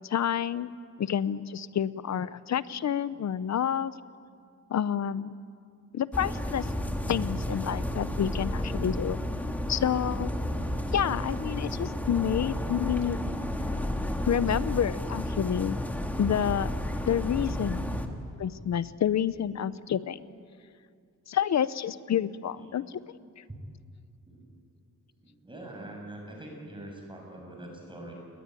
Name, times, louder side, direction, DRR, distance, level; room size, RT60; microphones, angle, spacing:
voice 1, 0.0-3.9 4.7-5.3 5.9-6.7 7.1-9.2 9.7-10.3 10.9-13.2 14.2-15.8 16.2-16.7 17.1-17.9 18.4-20.2 21.3-23.0 23.4-23.5, left 9 dB, 55° left, 16 dB, 0.7 m, -29 dB
sound 1, 6.1-18.1, left 1 dB, 5° left, 1.8 m, -32 dB
voice 2, 25.2-28.1, right 1 dB, 15° right, 0 dB, 6.8 m, -44 dB
29.5 x 20.5 x 9.1 m, 2.3 s
wide cardioid pair, 150°, 32 cm